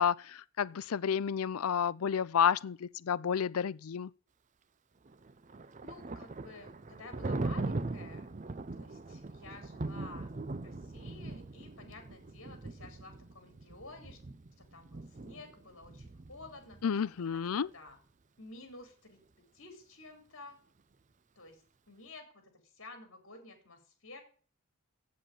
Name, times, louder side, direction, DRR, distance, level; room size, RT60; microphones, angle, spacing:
voice 1, 0.0-4.1 16.8-17.7, left 7 dB, 75° left, 0.5 m, -30 dB
Thunder, 5.1-16.8, right 2 dB, 35° right, 0.5 m, -41 dB
voice 2, 5.8-8.3 8.7-10.3 10.6-14.2 14.6-18.0 18.4-19.2 19.5-20.6 21.4-21.6 21.9-22.4 22.7-24.2, left 2 dB, 60° left, 3.9 m, -52 dB
8.3 x 7.6 x 8.8 m
head